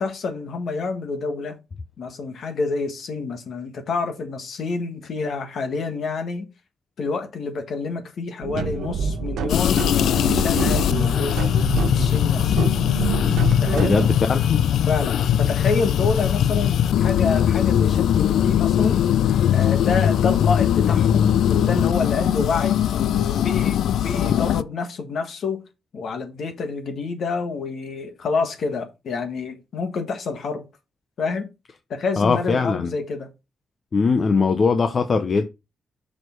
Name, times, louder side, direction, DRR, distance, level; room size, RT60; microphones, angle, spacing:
voice 1, 0.0-1.6 2.0-6.5 7.0-11.5 11.9-12.7 13.6-14.0 14.9-19.0 19.5-25.6 25.9-30.6 31.2-31.5 31.9-33.3, left 4 dB, 60° left, 1.6 m, -28 dB
sound 1, 8.4-14.1, right 6 dB, 85° right, 0.7 m, -27 dB
sound 2, 9.5-24.6, left 10 dB, 85° left, 0.4 m, -20 dB
voice 2, 13.8-14.6 32.2-32.9 33.9-35.4, left 4 dB, 35° left, 0.6 m, -20 dB
6.4 x 4.9 x 4.5 m
wide cardioid pair, 170°, 0 cm